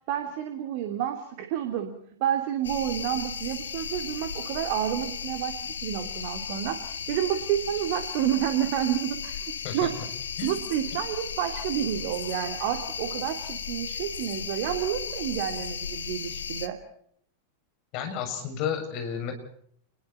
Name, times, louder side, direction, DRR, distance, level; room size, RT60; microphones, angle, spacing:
voice 1, 0.1-1.9 2.2-9.9 10.4-16.8, right 11 dB, 45° right, 6 dB, 2.8 m, -29 dB
sound 1, 2.6-16.7, left 7 dB, 70° left, 1.7 m, -35 dB
voice 2, 17.9-19.3, left 8 dB, 45° left, 5 dB, 7.3 m, -31 dB
30.0 x 22.0 x 4.4 m, 0.65 s
figure-of-eight pair, 90°, 0 cm